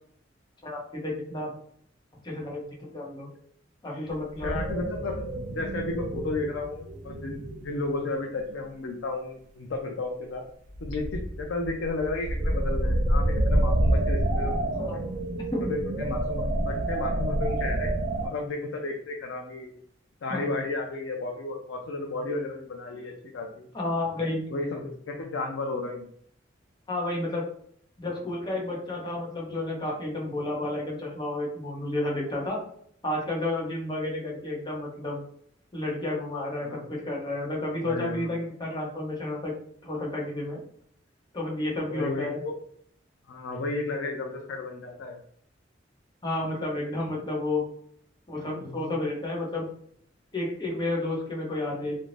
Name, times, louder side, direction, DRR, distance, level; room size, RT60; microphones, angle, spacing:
voice 1, 0.6-1.5 2.2-3.3 3.8-4.5 14.7-15.0 15.5-15.6 20.3-20.4 23.7-24.4 26.9-27.4 28.0-32.6 33.0-35.2 35.7-39.5 39.8-40.6 41.3-42.4 46.2-47.6 48.3-49.7 50.3-52.0, left 2 dB, 25° left, -3 dB, 0.8 m, -31 dB
sound 1, 4.1-4.2 4.4-7.8 8.4-8.7 10.7-18.3, right 1 dB, 40° right, 0.4 m, -28 dB
voice 2, 4.4-10.4 10.8-15.0 15.6-17.9 18.2-19.8 20.2-23.7 24.5-26.1 36.6-37.0 37.7-38.3 38.7-38.8 41.9-42.6 43.3-45.2 48.4-48.9, left 3 dB, 80° left, 1 dB, 0.5 m, -33 dB
2.5 x 2.1 x 3.1 m, 0.65 s
head